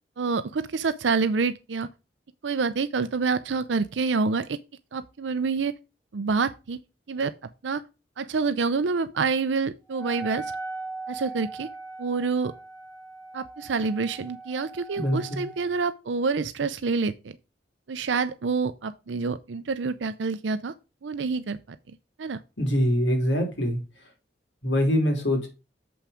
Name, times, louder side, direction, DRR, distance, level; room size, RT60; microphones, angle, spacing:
voice 1, 0.2-1.9 2.4-4.6 4.9-5.7 6.1-6.8 7.1-7.3 7.6-7.8 8.2-10.5 11.1-11.7 12.0-12.5 13.3-17.1 17.9-20.7 21.0-21.6 21.9-22.4, right 4 dB, 80° right, 0.5 m, -27 dB
Wind instrument woodwind instrument, 9.9-15.7, right 3 dB, 15° left, 2.7 m, -39 dB
voice 2, 15.0-15.4 22.6-23.8 24.6-25.5, equal, 90° left, 3.3 m, -24 dB
7.2 x 5.8 x 5.0 m
head